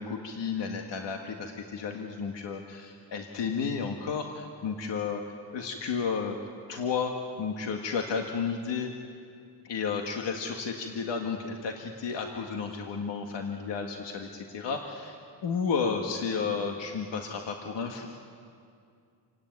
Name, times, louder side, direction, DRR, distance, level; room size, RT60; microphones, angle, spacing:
voice 1, 0.0-5.2 5.5-6.4 6.7-8.9 9.6-18.1, left 5 dB, 90° left, 2 dB, 1.9 m, -32 dB
28.0 x 17.5 x 9.4 m, 2.4 s
wide cardioid pair, 165°, 42 cm